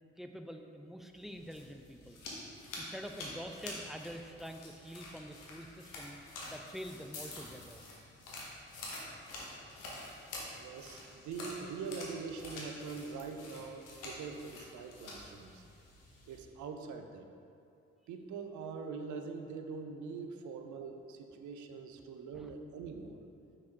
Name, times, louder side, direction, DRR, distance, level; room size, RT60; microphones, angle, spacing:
voice 1, 0.2-2.2 2.8-6.2 6.5-7.8 22.4-22.5, equal, ahead, 5 dB, 0.4 m, -46 dB
sound 1, 1.2-16.4, left 2 dB, 70° left, 1.3 m, -48 dB
voice 2, 10.6-15.6 16.3-17.3 18.1-23.2, right 5 dB, 60° right, 5 dB, 0.6 m, -43 dB
5.8 x 5.1 x 3.6 m, 2.7 s
hypercardioid pair, 40°, 33 cm